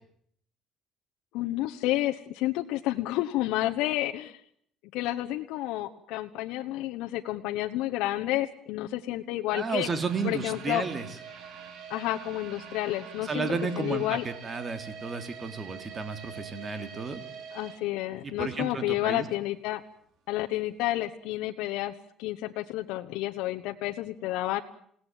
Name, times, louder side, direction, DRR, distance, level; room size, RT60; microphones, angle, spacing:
voice 1, 1.3-4.4 4.9-9.9 10.2-10.8 11.9-14.2 17.5-19.8 20.3-21.9 22.2-24.6, left 16 dB, 85° left, 5 dB, 1.2 m, -30 dB
voice 2, 9.5-11.1 13.2-17.2 18.2-19.3, right 4 dB, 30° right, 8 dB, 3.0 m, -32 dB
sound 1, 9.7-18.7 19.0-19.1 19.6-19.7, right 7 dB, 60° right, 5.3 m, -45 dB
28.5 x 18.0 x 9.3 m, 0.69 s
cardioid pair, 125°, 0 cm